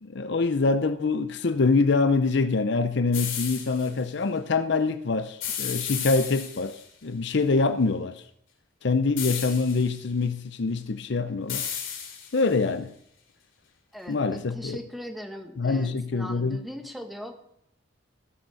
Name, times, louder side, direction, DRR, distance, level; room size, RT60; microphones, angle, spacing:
voice 1, 0.0-8.2 8.8-11.7 12.3-12.9 14.1-14.8 15.6-16.6, left 3 dB, 60° left, 0.6 m, -25 dB
sound 1, 3.1-3.9 5.4-6.8 9.2-10.0 11.5-12.5, left 8 dB, 80° left, 3.1 m, -33 dB
voice 2, 13.9-17.3, equal, ahead, 1.4 m, -39 dB
15.0 x 6.5 x 6.9 m
head